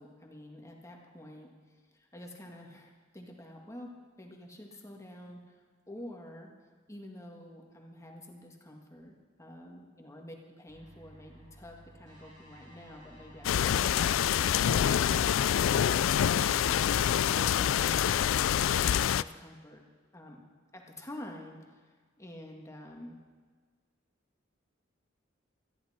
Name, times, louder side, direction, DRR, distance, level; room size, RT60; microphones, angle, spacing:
voice 1, 0.0-1.5 1.9-3.9 4.2-5.6 5.9-6.5 6.9-14.1 17.3-18.2 18.5-19.8 20.1-20.4 20.7-21.8 22.2-23.2, left 1 dB, 15° left, 0 dB, 1.9 m, -48 dB
sound 1, 10.7-15.7, right 1 dB, 40° right, 4.8 m, -55 dB
sound 2, 13.4-19.2, left 9 dB, 75° left, 0.3 m, -26 dB
18.5 x 14.0 x 4.4 m, 1.5 s
head